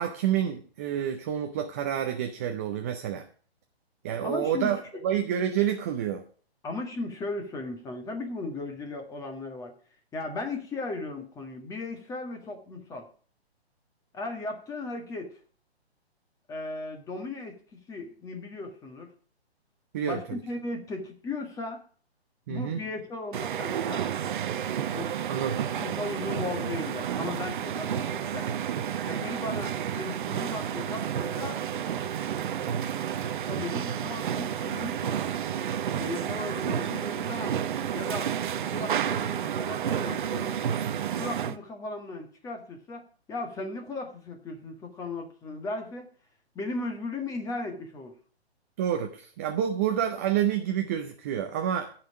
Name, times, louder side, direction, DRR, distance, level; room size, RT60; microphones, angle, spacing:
voice 1, 0.0-3.3 4.0-6.2 19.9-20.4 22.5-22.8 25.3-25.6 48.8-51.9, right 9 dB, 15° right, 5 dB, 0.5 m, -28 dB
voice 2, 4.2-4.7 6.6-9.7 10.1-13.1 14.1-15.3 16.5-19.1 20.0-21.8 22.5-24.0 24.9-25.2 25.6-28.5 29.0-31.6 33.5-35.2 36.0-38.3 38.7-40.6 41.2-43.0 43.3-46.1 46.5-48.1, left 2 dB, 10° left, 4 dB, 1.7 m, -36 dB
sound 1, 23.3-41.6, right 9 dB, 50° right, 0.8 m, -31 dB
16.5 x 5.9 x 4.8 m, 0.42 s
hypercardioid pair, 150°, 32 cm